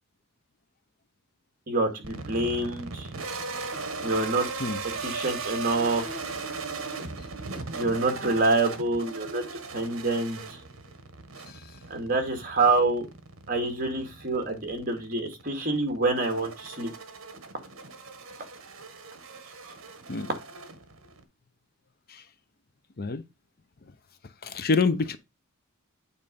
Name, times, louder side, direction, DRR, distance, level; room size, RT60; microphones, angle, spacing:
voice 1, 1.7-3.1 4.0-4.5 5.0-6.0 7.7-9.4 9.7-10.6 11.9-13.1 13.5-16.9, right 2 dB, 40° right, 2.2 m, -26 dB
sound 1, 2.0-21.2, right 4 dB, 70° right, 1.3 m, -38 dB
voice 2, 24.4-25.2, left 4 dB, 45° left, 0.6 m, -27 dB
8.8 x 4.1 x 5.3 m
head